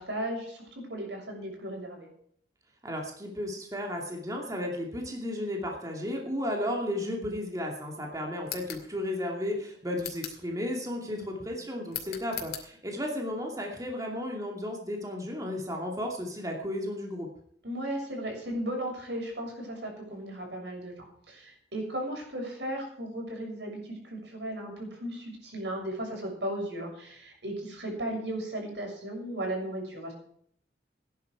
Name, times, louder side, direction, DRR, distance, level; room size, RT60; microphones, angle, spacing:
voice 1, 0.0-2.1 11.1-11.5 17.6-30.1, right 1 dB, 85° right, 1 dB, 6.9 m, -36 dB
voice 2, 2.8-17.3, left 1 dB, 20° right, 0 dB, 2.5 m, -34 dB
sound 1, 8.4-8.9 10.0-10.5 11.9-12.7, left 10 dB, 60° left, 2.7 m, -39 dB
17.5 x 10.5 x 4.8 m, 0.64 s
head